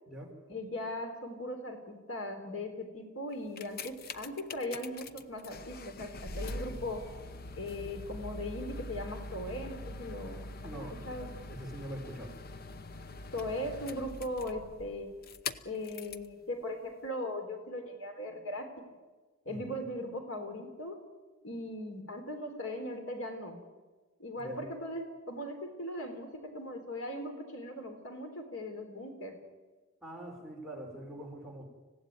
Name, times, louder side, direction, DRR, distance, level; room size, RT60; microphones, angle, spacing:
voice 1, 0.5-7.1 7.6-11.3 13.3-15.2 15.6-18.9 19.5-21.0 21.4-23.6 24.2-29.4, left 1 dB, 80° left, 5 dB, 3.8 m, -39 dB
sound 1, 3.3-16.3 17.0-17.1, left 2 dB, 50° left, 0.9 m, -43 dB
voice 2, 10.6-11.0 11.5-12.3 19.4-19.8 24.4-24.6 30.0-31.6, right 1 dB, ahead, -2 dB, 5.0 m, -43 dB
26.0 x 16.5 x 9.5 m, 1.3 s
head